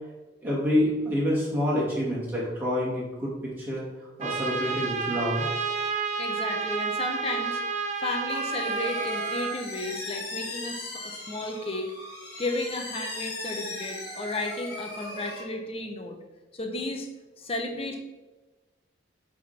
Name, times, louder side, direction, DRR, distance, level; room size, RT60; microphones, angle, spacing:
voice 1, 0.4-3.9 4.2-5.4, left 1 dB, 10° right, -7 dB, 2.4 m, -27 dB
Trumpet, 4.2-9.6, right 5 dB, 40° right, 0.6 m, -30 dB
voice 2, 6.2-7.6 8.0-11.9 12.4-16.2 16.5-17.1 17.4-18.0, left 2 dB, 30° left, 3 dB, 0.9 m, -33 dB
sound 1, 8.3-15.4, left 2 dB, 60° left, 1.8 m, -38 dB
9.2 x 3.7 x 4.4 m, 1.2 s
head